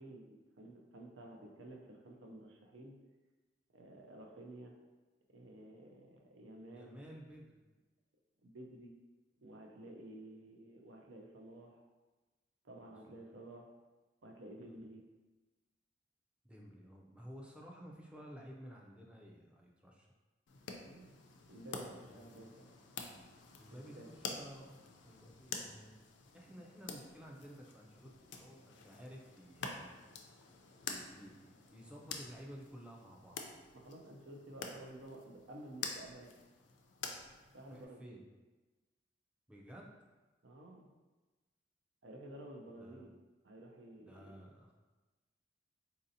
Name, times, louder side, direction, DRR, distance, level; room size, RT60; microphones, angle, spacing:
voice 1, 0.0-3.0 3.7-4.8 5.3-7.0 8.4-8.9 9.4-11.8 12.6-13.7 14.2-15.0 20.8-21.2 21.5-22.7 24.0-24.1 33.7-36.4 37.5-38.3 40.4-40.9 42.0-43.1 43.4-44.3, right 1 dB, 85° right, 1 dB, 0.5 m, -52 dB
voice 2, 6.7-7.6 12.9-13.3 14.6-14.8 16.4-20.1 22.1-22.4 23.6-24.8 25.0-25.9 26.3-30.0 30.9-33.4 37.7-38.2 39.5-39.9 42.8-43.0 43.9-44.7, equal, 5° right, -2 dB, 0.4 m, -53 dB
sound 1, 20.5-37.9, left 5 dB, 70° left, 0.4 m, -48 dB
4.1 x 2.7 x 2.6 m, 1.2 s
head